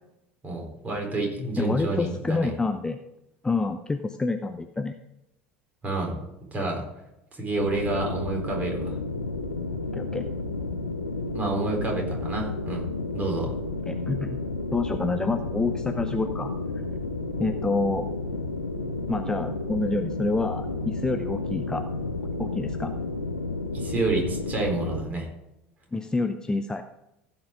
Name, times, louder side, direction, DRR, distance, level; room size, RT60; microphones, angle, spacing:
voice 1, 0.4-2.5 5.8-6.1 6.5-6.8 7.3-9.0 11.3-12.9 13.1-13.5 23.7-25.3, right 2 dB, 25° right, 1 dB, 4.2 m, -29 dB
voice 2, 1.6-3.0 3.4-4.9 9.9-10.2 13.9-14.4 14.7-16.5 17.4-18.1 19.1-21.8 22.4-22.9 25.9-26.8, left 3 dB, 10° left, 8 dB, 0.6 m, -27 dB
sound 1, 7.5-25.0, left 3 dB, 90° left, 0.8 m, -31 dB
15.5 x 5.9 x 5.1 m, 0.87 s
figure-of-eight pair, 70°, 6 cm